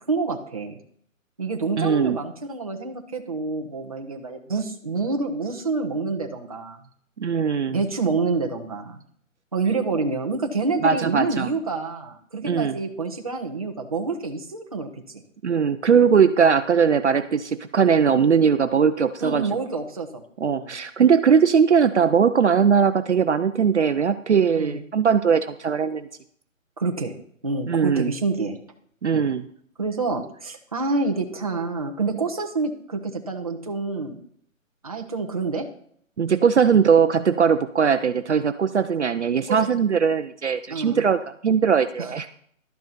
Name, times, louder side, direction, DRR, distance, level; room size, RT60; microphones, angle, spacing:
voice 1, 0.1-0.8 1.4-6.8 7.7-9.0 9.5-14.9 15.1-15.2 19.2-20.2 20.5-20.7 24.5-24.8 26.8-27.1 27.4-28.6 29.1-29.3 29.8-34.2 34.8-35.7 39.5-39.6 40.7-41.0 42.0-42.1, right 3 dB, 25° right, 2 dB, 0.9 m, -27 dB
voice 2, 1.8-2.2 7.2-7.8 10.8-11.5 12.5-12.8 15.4-19.5 20.4-26.1 27.7-28.1 29.0-29.4 36.2-42.3, right 6 dB, 60° right, 10 dB, 0.6 m, -20 dB
12.0 x 9.3 x 4.2 m, 0.64 s
hypercardioid pair, 175°, 40 cm